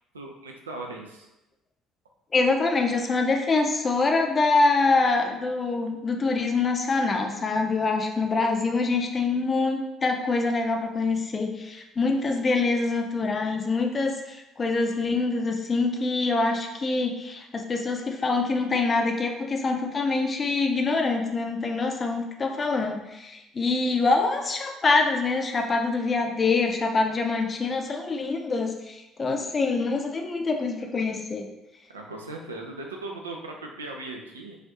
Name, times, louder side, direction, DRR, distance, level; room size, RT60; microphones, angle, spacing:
voice 1, 0.1-1.3 31.9-34.6, right 2 dB, 80° right, 1 dB, 0.4 m, -38 dB
voice 2, 2.3-31.5, left 3 dB, 30° left, 4 dB, 0.5 m, -25 dB
4.8 x 2.5 x 2.8 m, 0.95 s
figure-of-eight pair, 50°, 0 cm